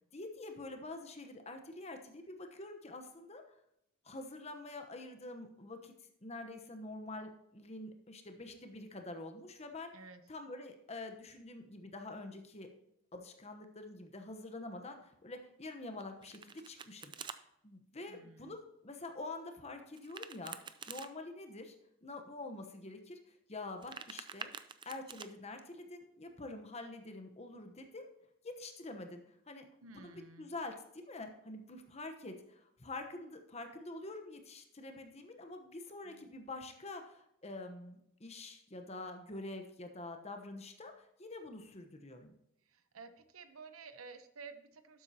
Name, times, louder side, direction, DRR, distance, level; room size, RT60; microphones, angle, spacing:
voice 1, 0.1-3.4 4.0-5.9 6.2-9.9 10.3-12.7 13.1-21.7 22.0-24.5 24.8-28.0 28.4-29.2 29.5-29.7 29.9-42.3, left 2 dB, 30° left, 6 dB, 1.0 m, -46 dB
Domestic sounds home sounds, 16.0-17.4 19.9-21.1 23.6-25.3, right 6 dB, 20° right, 0.4 m, -47 dB
voice 2, 18.1-18.6 29.8-30.5 36.0-36.3 42.6-45.0, right 4 dB, 90° right, 9 dB, 0.9 m, -53 dB
12.0 x 7.9 x 2.9 m, 0.78 s
head